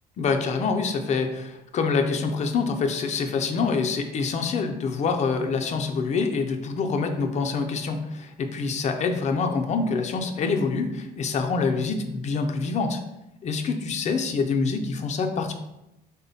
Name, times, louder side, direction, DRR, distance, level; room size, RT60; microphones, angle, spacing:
voice 1, 0.2-13.0 13.4-15.5, left 4 dB, 45° left, 5 dB, 0.4 m, -26 dB
3.2 x 2.1 x 3.9 m, 0.92 s
cardioid pair, 110°, 17 cm